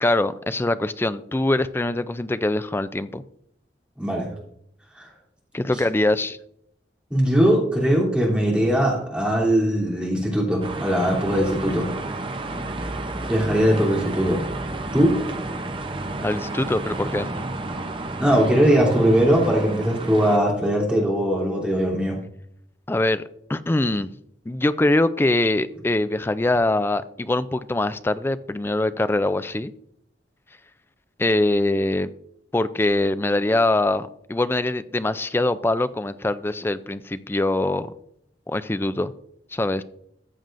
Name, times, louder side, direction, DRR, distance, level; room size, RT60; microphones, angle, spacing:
voice 1, 0.0-3.2 5.5-6.4 16.2-17.3 22.9-23.2 23.5-24.1 24.5-29.7 31.2-32.1 32.5-37.9 38.5-39.1 39.5-39.8, left 2 dB, 15° left, 13 dB, 0.3 m, -23 dB
voice 2, 7.1-11.9 13.3-14.4 14.9-15.2 18.2-22.2, equal, 5° right, -4 dB, 3.0 m, -20 dB
sound 1, 10.6-20.4, right 2 dB, 30° right, 0.7 m, -31 dB
14.5 x 7.6 x 2.6 m, 0.71 s
head